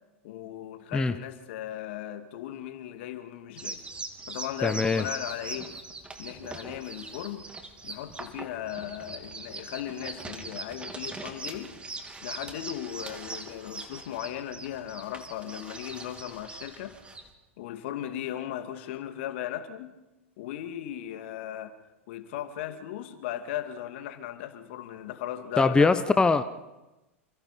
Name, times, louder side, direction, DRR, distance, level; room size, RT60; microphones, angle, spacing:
voice 1, 0.2-3.9 4.3-5.8 6.2-7.5 7.8-11.8 12.2-17.0 17.6-20.0 20.4-21.7 22.1-25.9, left 11 dB, 60° left, 2.4 m, -37 dB
sound 1, 3.6-17.3, right 3 dB, 15° right, 3.3 m, -41 dB
voice 2, 4.6-5.0 25.6-26.4, left 3 dB, 10° left, 1.0 m, -22 dB
28.5 x 28.0 x 5.2 m
figure-of-eight pair, 90°, 7 cm